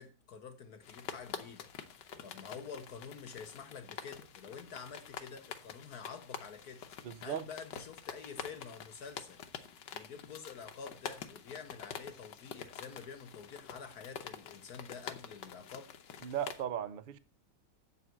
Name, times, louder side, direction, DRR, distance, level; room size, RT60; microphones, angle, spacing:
voice 1, 0.0-6.8 7.2-9.4 9.9-15.9, left 6 dB, 65° left, 1.4 m, -48 dB
sound 1, 0.8-16.6, left 7 dB, 90° left, 1.6 m, -47 dB
voice 2, 7.0-7.5 16.2-17.2, right 9 dB, 90° right, 0.4 m, -37 dB
7.9 x 7.8 x 7.7 m
omnidirectional pair, 1.9 m